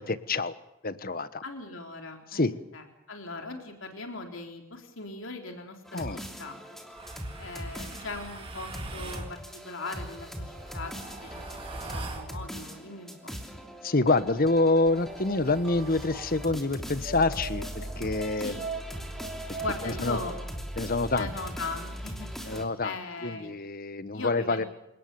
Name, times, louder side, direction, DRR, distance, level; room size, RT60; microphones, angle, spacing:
voice 1, 0.1-0.5 0.8-1.4 2.3-2.5 5.9-6.2 13.8-18.6 19.5-20.2 20.8-21.3 22.4-22.9 23.2-24.6, left 2 dB, 40° left, 13 dB, 1.2 m, -27 dB
voice 2, 1.4-2.4 2.7-6.1 6.4-6.6 7.4-11.5 11.8-13.3 18.4-18.6 19.6-20.3 21.2-23.5 24.1-24.7, left 3 dB, 60° left, 3 dB, 3.9 m, -39 dB
sound 1, 5.8-22.7, equal, ahead, 3.1 m, -40 dB
sound 2, 6.9-9.3 10.3-12.3 14.0-16.3 17.0-20.4, right 3 dB, 25° right, 3.4 m, -42 dB
29.0 x 18.5 x 7.0 m, 0.94 s
head